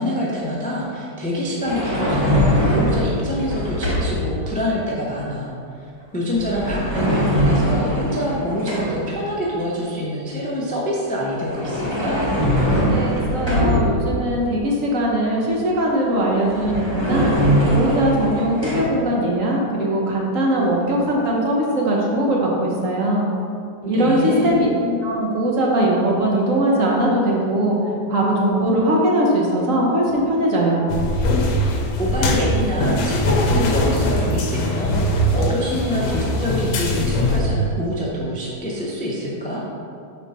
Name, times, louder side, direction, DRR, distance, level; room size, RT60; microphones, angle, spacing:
voice 1, 0.0-5.5 6.1-12.2 23.8-24.6 32.0-39.6, equal, 10° left, -5 dB, 0.3 m, -25 dB
sound 1, 1.6-4.3 6.3-9.1 11.3-14.2 16.1-16.2 16.4-18.8, equal, 20° right, 1.0 m, -21 dB
voice 2, 12.9-17.3 17.7-23.3 23.9-27.8 28.1-30.8, right 1 dB, 55° right, -3 dB, 1.2 m, -20 dB
sound 2, 30.9-37.4, left 1 dB, 65° left, 1.0 m, -21 dB
4.4 x 4.4 x 5.5 m, 2.4 s
omnidirectional pair, 1.9 m